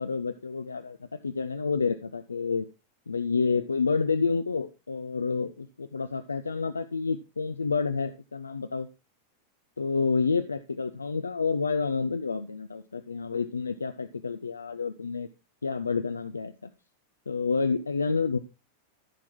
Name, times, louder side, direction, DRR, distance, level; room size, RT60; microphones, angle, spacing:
voice 1, 0.0-2.7 3.1-8.9 9.8-15.3 15.6-16.7 17.3-18.4, left 4 dB, 75° left, 11 dB, 0.5 m, -29 dB
14.0 x 6.1 x 3.6 m, 0.26 s
figure-of-eight pair, 90°, 0 cm